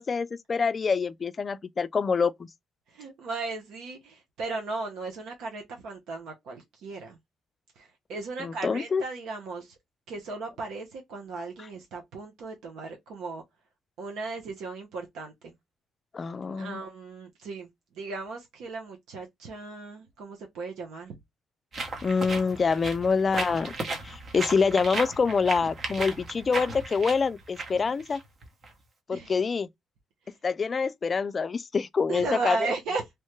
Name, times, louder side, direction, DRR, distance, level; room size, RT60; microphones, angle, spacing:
voice 1, 0.0-2.5 8.4-9.0 16.1-16.8 22.0-23.8 24.0-28.2 29.1-29.7 30.4-32.6, left 5 dB, 40° left, 0.3 m, -26 dB
voice 2, 2.9-7.2 7.8-9.7 10.1-13.4 14.0-15.6 16.5-17.7 17.9-21.2 29.1-29.4 32.1-33.1, right 3 dB, 85° right, 0.8 m, -36 dB
sound 1, 21.7-28.7, right 3 dB, 45° right, 0.9 m, -36 dB
3.1 x 2.2 x 3.0 m
cardioid pair, 90°, 0 cm